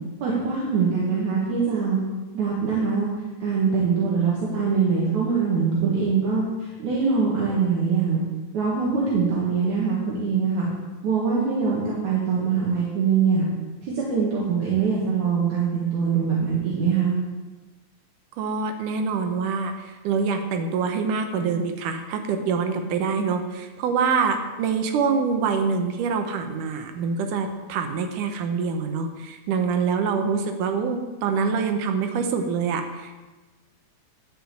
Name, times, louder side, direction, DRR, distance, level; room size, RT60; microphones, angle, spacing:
voice 1, 0.2-2.0 2.3-3.1 3.4-8.2 8.5-10.7 11.0-13.5 13.8-17.2, right 5 dB, 70° right, -5 dB, 3.2 m, -23 dB
voice 2, 18.4-33.2, right 5 dB, 85° right, 5 dB, 2.5 m, -25 dB
12.0 x 5.4 x 7.7 m, 1.2 s
omnidirectional pair, 3.5 m